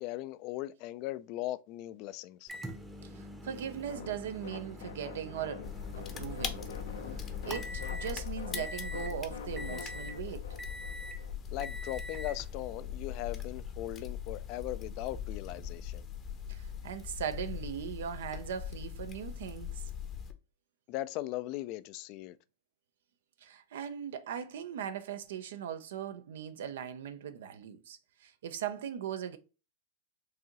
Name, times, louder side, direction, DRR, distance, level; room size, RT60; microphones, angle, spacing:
voice 1, 0.0-2.5 11.5-16.0 20.9-22.4, left 15 dB, 45° left, 0.4 m, -39 dB
Microwave oven, 2.5-8.1 8.5-9.2 9.6-10.2 10.6-11.2 11.6-12.4 13.4-13.5 15.5-15.6, equal, 5° right, 0.8 m, -44 dB
voice 2, 3.0-5.7 6.0-6.6 7.1-10.4 16.5-19.8 23.4-29.4, right 9 dB, 75° right, 0.6 m, -39 dB
sound 1, 3.9-11.3, left 6 dB, 85° left, 0.8 m, -46 dB
sound 2, 5.6-20.3, left 8 dB, 25° left, 0.7 m, -41 dB
4.7 x 2.7 x 3.0 m
hypercardioid pair, 130°, 0 cm